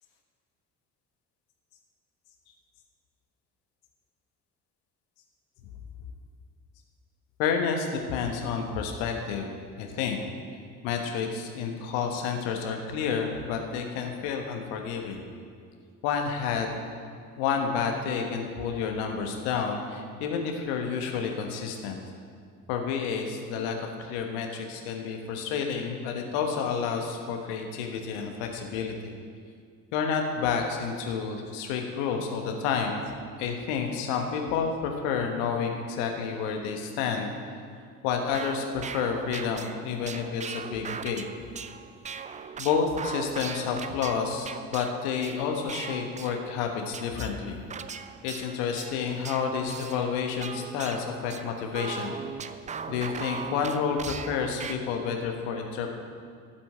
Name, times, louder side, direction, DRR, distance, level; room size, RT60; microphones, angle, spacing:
voice 1, 7.4-9.5 9.8-10.2 10.8-15.2 16.0-16.8 17.4-22.0 22.7-29.1 29.9-33.0 33.4-37.3 38.0-41.2 42.6-47.6 48.2-52.1 52.9-56.0, left 6 dB, 65° left, 3 dB, 1.5 m, -30 dB
sound 1, 38.1-46.6 46.9-54.7, right 6 dB, 15° right, 0.4 m, -39 dB
13.0 x 6.1 x 7.8 m, 2.2 s
figure-of-eight pair, 50°, 44 cm